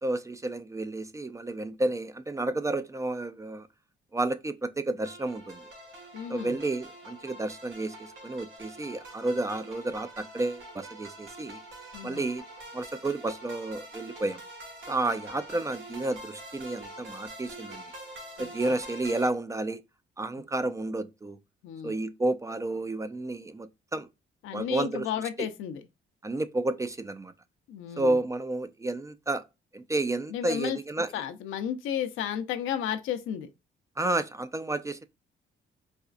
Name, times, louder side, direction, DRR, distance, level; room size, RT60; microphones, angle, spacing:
voice 1, 0.0-3.7 4.1-5.7 6.3-11.6 12.0-12.4 12.7-14.4 14.9-17.8 18.4-19.8 20.2-21.4 21.8-24.1 24.5-25.1 26.2-27.3 28.0-29.5 29.7-31.1 34.0-35.1, right 2 dB, 15° right, 0.3 m, -31 dB
sound 1, 5.0-19.3, right 1 dB, 80° right, 1.5 m, -45 dB
voice 2, 6.1-6.6 11.9-12.3 18.4-18.7 21.6-21.9 24.4-25.8 27.7-28.2 30.3-30.8 31.1-33.5, left 9 dB, 85° left, 0.6 m, -33 dB
4.2 x 2.4 x 2.3 m
cardioid pair, 90°, 20 cm